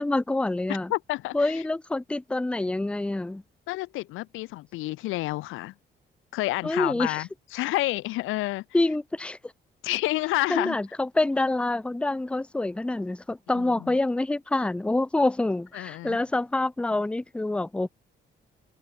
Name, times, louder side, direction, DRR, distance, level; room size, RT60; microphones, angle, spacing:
voice 1, 0.0-0.9 1.3-3.4 6.6-7.2 8.7-9.4 10.5-17.9, left 2 dB, 5° left, 0.5 m, -26 dB
voice 2, 0.9-1.6 3.7-5.7 6.3-8.6 9.8-10.8 13.5-13.9 15.7-16.2, left 19 dB, 90° left, 0.5 m, -29 dB
cardioid pair, 90°, 20 cm